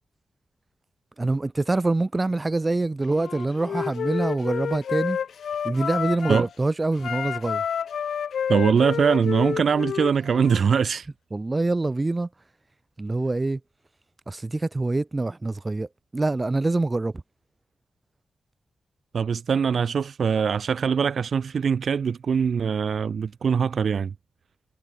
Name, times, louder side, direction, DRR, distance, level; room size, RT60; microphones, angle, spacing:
voice 1, 1.2-5.2 5.6-7.6 11.3-12.3 13.0-13.6 14.3-17.1, right 2 dB, 25° right, 2.4 m, -25 dB
Wind instrument woodwind instrument, 3.1-6.5 7.0-10.6, left 8 dB, 85° left, 1.1 m, -30 dB
voice 2, 8.5-11.1 19.1-24.1, right 6 dB, 70° right, 1.6 m, -22 dB
wide cardioid pair, 90°, 0 cm